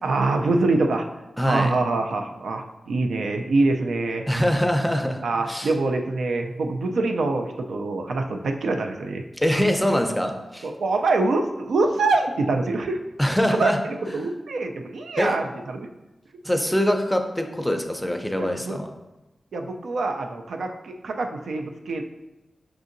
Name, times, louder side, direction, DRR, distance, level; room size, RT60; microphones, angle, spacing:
voice 1, 0.0-1.1 1.4-4.2 5.2-9.2 10.6-13.0 13.5-13.7 14.0-15.9 18.4-18.8 19.5-22.0, right 3 dB, 90° right, 4 dB, 0.4 m, -25 dB
voice 2, 1.4-1.7 4.3-5.7 9.4-10.7 13.2-13.8 15.2-15.4 16.4-18.9, equal, 5° left, 4 dB, 0.5 m, -23 dB
5.9 x 2.6 x 2.5 m, 1.0 s
cardioid pair, 65°, 0 cm